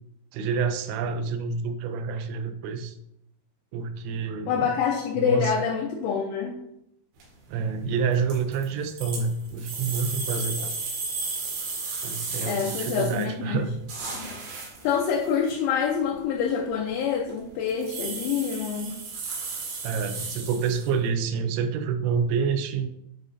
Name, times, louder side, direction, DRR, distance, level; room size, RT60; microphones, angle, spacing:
voice 1, 0.3-3.0 3.7-4.7 5.2-5.5 7.5-10.7 12.0-13.7 19.8-22.9, right 5 dB, 85° right, 8 dB, 3.3 m, -28 dB
voice 2, 4.5-6.6 12.4-13.7 14.8-19.0, left 7 dB, 80° left, -1 dB, 3.1 m, -26 dB
sound 1, 7.2-7.5 8.1-13.2 13.6-15.5 16.1-16.2 16.6-17.0 17.3-17.4 17.7-21.1, right 4 dB, 65° right, 4.2 m, -34 dB
11.0 x 5.5 x 2.7 m, 0.77 s
omnidirectional pair, 5.7 m